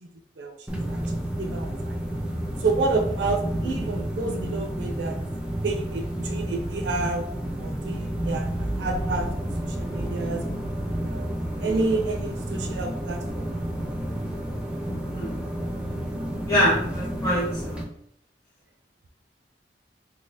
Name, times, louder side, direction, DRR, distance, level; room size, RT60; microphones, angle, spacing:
sound 1, 0.7-17.8, right 1 dB, 5° right, 0.4 m, -30 dB
voice 1, 1.4-2.0 2.6-5.2 5.6-7.3 7.6-9.3 9.6-10.4 10.8-11.3 11.6-13.5, right 3 dB, 85° right, 4 dB, 0.4 m, -29 dB
voice 2, 16.4-17.8, equal, 15° left, -8 dB, 1.0 m, -25 dB
4.0 x 2.8 x 2.7 m, 0.68 s
head